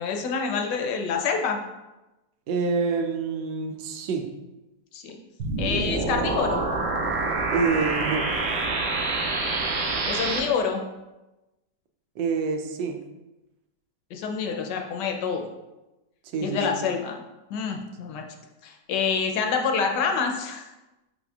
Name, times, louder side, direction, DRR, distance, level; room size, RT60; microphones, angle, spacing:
voice 1, 0.0-1.6 4.9-5.2 5.6-6.6 9.2-9.6 10.0-10.8 14.1-15.5 16.4-17.2 17.5-18.2 18.6-20.7, left 5 dB, 75° left, 3 dB, 1.2 m, -27 dB
voice 2, 2.5-4.3 7.5-8.3 12.2-13.0 16.3-16.8, right 4 dB, 80° right, 5 dB, 1.3 m, -27 dB
sound 1, 5.4-10.4, right 3 dB, 65° right, 0.8 m, -26 dB
5.3 x 4.3 x 2.3 m, 1.0 s
omnidirectional pair, 1.9 m